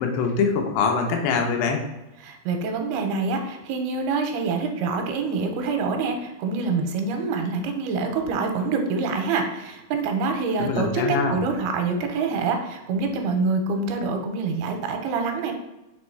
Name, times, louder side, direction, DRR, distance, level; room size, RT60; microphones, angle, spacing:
voice 1, 0.0-1.8 10.6-11.4, left 5 dB, 85° left, 3 dB, 2.9 m, -23 dB
voice 2, 2.2-15.5, right 4 dB, 85° right, 4 dB, 2.6 m, -26 dB
6.7 x 3.1 x 4.6 m, 0.96 s
omnidirectional pair, 4.6 m